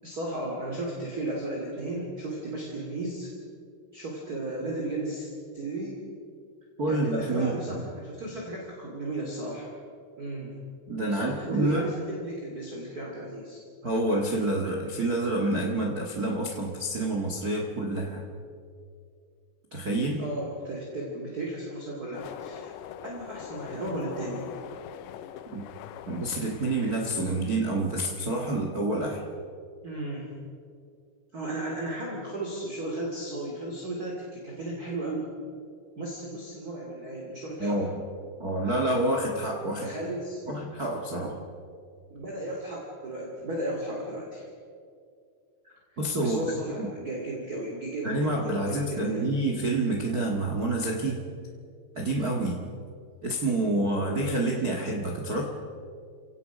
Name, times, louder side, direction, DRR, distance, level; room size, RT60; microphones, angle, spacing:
voice 1, 0.0-3.3 3.9-5.3 5.5-6.0 6.9-9.7 10.2-10.5 11.1-13.6 20.2-22.7 23.0-24.5 29.8-30.2 31.3-35.3 36.0-37.8 39.7-40.5 42.1-44.4 46.2-49.3, right 1 dB, 25° right, -2 dB, 2.5 m, -35 dB
voice 2, 6.8-7.8 10.9-11.9 13.8-18.2 19.7-20.2 25.5-25.6 26.1-29.2 37.6-38.0 38.4-39.9 40.5-41.4 46.0-46.4 46.8-46.9 48.0-51.2 51.9-52.7 53.2-55.4, right 2 dB, 85° right, 0 dB, 0.8 m, -28 dB
sound 1, 22.1-27.6, left 10 dB, 75° left, 2.5 m, -43 dB
29.5 x 17.5 x 5.2 m, 2.3 s
omnidirectional pair, 5.0 m